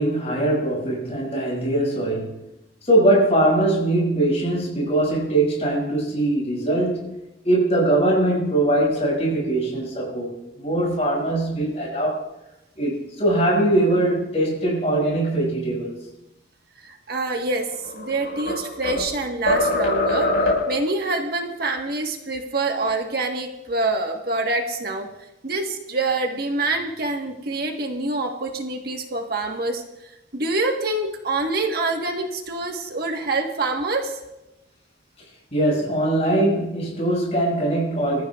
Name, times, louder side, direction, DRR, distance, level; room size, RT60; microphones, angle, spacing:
voice 1, 0.0-2.4 2.8-7.1 7.4-10.3 10.6-12.3 12.8-15.9 35.5-38.2, right 1 dB, 35° left, 5.8 m, -21 dB
voice 2, 16.8-17.7 17.9-20.3 20.7-25.1 25.4-34.2, right 2 dB, 55° right, 1.4 m, -26 dB
sound 1, 17.7-19.1 19.5-20.9, left 1 dB, 65° left, 5.1 m, -22 dB
24.0 x 14.0 x 2.4 m
head